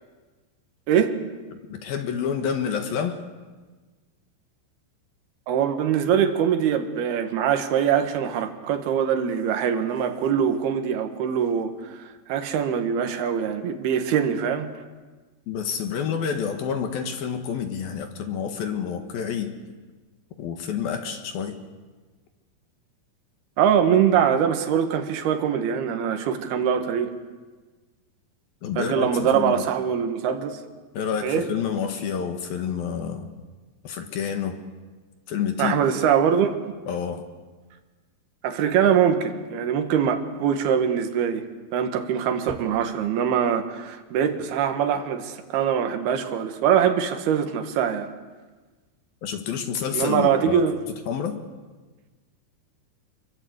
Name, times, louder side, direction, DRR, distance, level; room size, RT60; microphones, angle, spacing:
voice 1, 0.9-1.2 5.5-14.7 23.6-27.1 28.8-30.6 31.2-31.5 35.6-36.6 38.4-41.5 41.7-48.1 49.9-50.8, right 8 dB, 65° right, 7 dB, 3.3 m, -23 dB
voice 2, 1.7-3.2 15.5-19.5 20.4-21.6 28.6-29.6 30.9-33.3 33.8-34.6 35.3-35.8 36.9-37.3 49.2-50.6 51.1-51.4, left 7 dB, 60° left, 6 dB, 3.0 m, -28 dB
27.5 x 23.0 x 8.2 m, 1.3 s
omnidirectional pair, 5.4 m